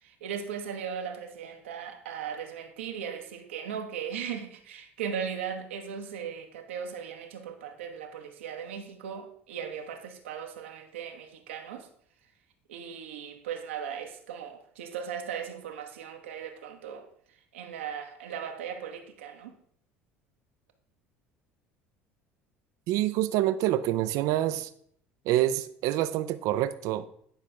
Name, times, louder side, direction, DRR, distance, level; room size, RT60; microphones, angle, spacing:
voice 1, 0.0-11.9 12.7-17.1 17.5-19.5, right 7 dB, 75° right, 1.0 m, -38 dB
voice 2, 22.9-24.7 25.3-27.1, right 13 dB, 55° right, 0.5 m, -26 dB
10.0 x 5.2 x 3.4 m
figure-of-eight pair, 65°, 7 cm